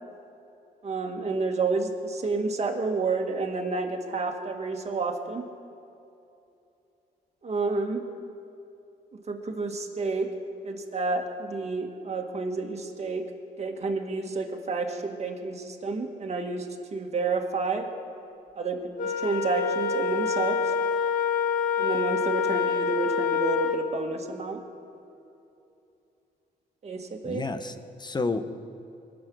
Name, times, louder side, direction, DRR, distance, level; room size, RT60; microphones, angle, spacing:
voice 1, 0.8-5.4 7.4-8.0 9.1-10.3 10.6-13.2 13.6-16.7 16.9-17.9 18.6-20.6 21.8-24.6 26.8-27.4, right 3 dB, 40° right, 2 dB, 1.8 m, -30 dB
Wind instrument woodwind instrument, 19.0-23.9, left 6 dB, 50° left, 1.3 m, -26 dB
voice 2, 27.2-28.5, left 3 dB, 25° left, 10 dB, 1.0 m, -30 dB
22.0 x 7.8 x 6.3 m, 2.7 s
cardioid pair, 85°, 18 cm